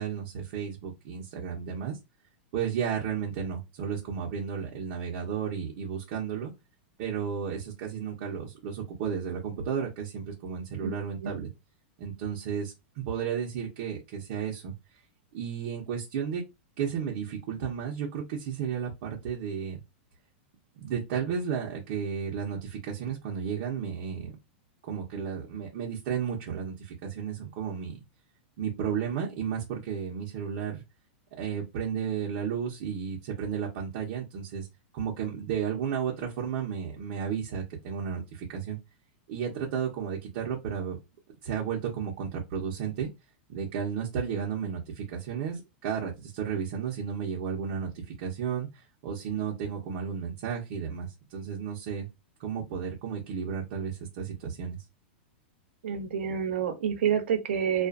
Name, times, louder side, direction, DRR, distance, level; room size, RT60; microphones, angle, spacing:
voice 1, 0.0-2.0 2.5-6.5 7.0-11.5 12.0-14.7 15.3-16.4 16.8-19.8 20.8-24.4 24.9-28.0 28.6-30.8 31.3-34.7 34.9-38.8 39.3-41.0 41.4-43.1 43.5-48.7 49.0-52.1 52.4-54.8, right 7 dB, 50° right, 0.8 m, -33 dB
voice 2, 55.8-57.9, right 8 dB, 85° right, 0.8 m, -28 dB
2.4 x 2.4 x 2.4 m
supercardioid pair, 150°, 6 cm